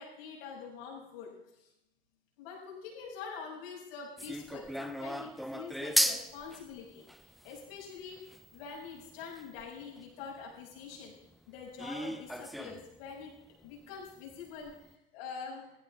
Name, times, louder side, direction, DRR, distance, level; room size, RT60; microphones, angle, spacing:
voice 1, 0.0-1.7 2.4-8.2 8.5-11.1 11.5-13.3 13.6-15.8, left 5 dB, 60° left, -2 dB, 7.1 m, -45 dB
sound 1, 4.2-10.0 10.5-10.6 11.0-11.1 11.8-13.0 13.2-13.3 13.6-13.7 14.3-14.4 14.6-14.8, equal, ahead, 0.8 m, -36 dB
17.0 x 16.5 x 3.6 m, 0.85 s
figure-of-eight pair, 80°, 31 cm